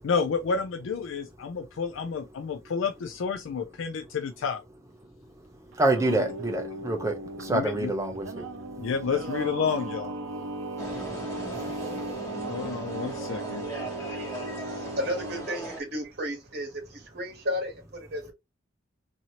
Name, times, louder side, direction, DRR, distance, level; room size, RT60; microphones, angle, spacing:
voice 1, 0.0-4.6 6.1-6.2 7.5-7.9 8.8-10.1 12.0-12.1 12.5-13.6, left 5 dB, 70° left, 0.4 m, -30 dB
Singing, 5.7-15.5, right 2 dB, 75° right, 0.6 m, -36 dB
voice 2, 5.8-8.4, right 2 dB, 15° right, 0.6 m, -27 dB
sound 1, 10.8-15.8, right 1 dB, 15° left, 1.1 m, -39 dB
voice 3, 13.9-18.3, equal, 55° right, 1.1 m, -34 dB
2.8 x 2.6 x 2.8 m
head